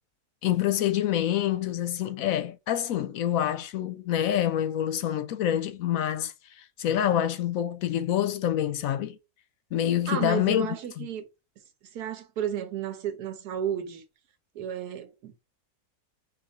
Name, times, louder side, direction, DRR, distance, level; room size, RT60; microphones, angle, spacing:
voice 1, 0.4-9.2 9.7-11.1, left 11 dB, 70° left, 0.9 m, -27 dB
voice 2, 10.1-11.3 11.9-14.0 14.5-15.3, right 9 dB, 85° right, 1.4 m, -32 dB
4.2 x 2.9 x 3.9 m
omnidirectional pair, 1.6 m